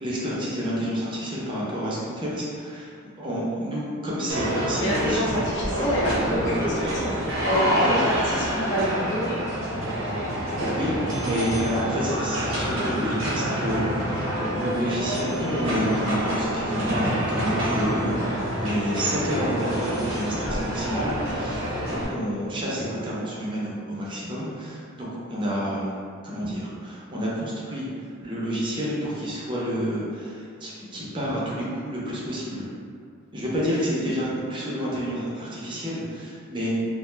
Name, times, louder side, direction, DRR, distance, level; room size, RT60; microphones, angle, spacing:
voice 1, 0.0-5.4 10.6-10.9 11.2-14.2 14.5-27.9 28.2-32.6 33.3-36.7, equal, 25° right, -6 dB, 0.5 m, -29 dB
sound 1, 4.3-22.1, equal, 85° right, 0.8 m, -27 dB
voice 2, 4.8-9.5, equal, 60° left, -6 dB, 0.7 m, -27 dB
2.3 x 2.2 x 3.1 m, 2.3 s
head